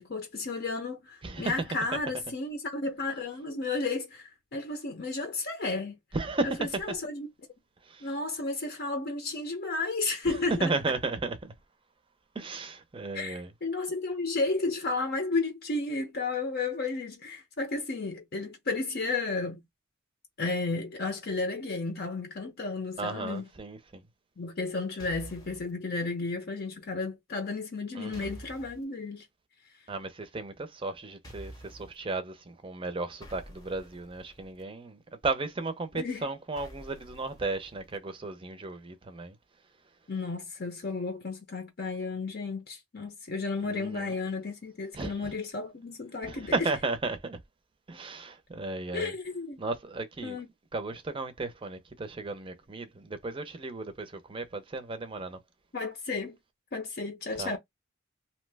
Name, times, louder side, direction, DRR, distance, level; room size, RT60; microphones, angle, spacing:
voice 1, 0.0-6.0 6.4-7.3 8.0-10.7 13.1-19.6 20.4-23.5 24.4-29.3 35.9-36.3 40.1-46.7 48.9-49.6 50.2-50.5 55.7-56.4 56.7-57.6, left 3 dB, 50° left, 0.7 m, -33 dB
voice 2, 6.1-6.6 7.9-8.1 10.3-11.5 12.3-13.5 23.0-24.0 28.0-28.3 29.9-39.4 43.6-44.1 44.9-45.3 46.2-47.4 47.9-49.1 49.6-50.4 50.7-55.4 57.4-57.6, right 3 dB, 25° right, 0.5 m, -34 dB
sound 1, 25.0-25.7 28.1-28.8 31.2-32.0 33.2-34.6 36.6-38.0, equal, 20° left, 0.8 m, -48 dB
2.7 x 2.1 x 3.3 m
head